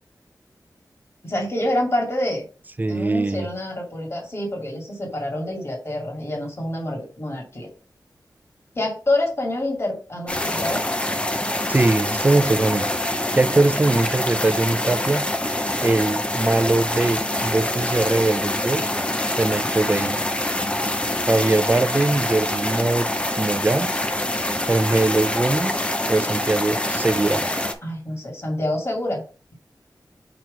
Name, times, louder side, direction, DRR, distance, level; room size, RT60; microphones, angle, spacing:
voice 1, 1.2-2.4 2.9-7.7 8.7-10.8 27.8-29.2, left 1 dB, 40° left, 2.3 m, -27 dB
voice 2, 2.8-3.5 11.7-12.9 13.3-15.2 15.8-18.9 19.4-20.2 21.2-23.1 23.4-23.9 24.7-25.8 26.1-27.5, right 2 dB, 25° right, 0.5 m, -21 dB
sound 1, 10.3-27.7, left 1 dB, 15° left, 0.7 m, -25 dB
6.1 x 3.0 x 5.2 m
wide cardioid pair, 90°, 7 cm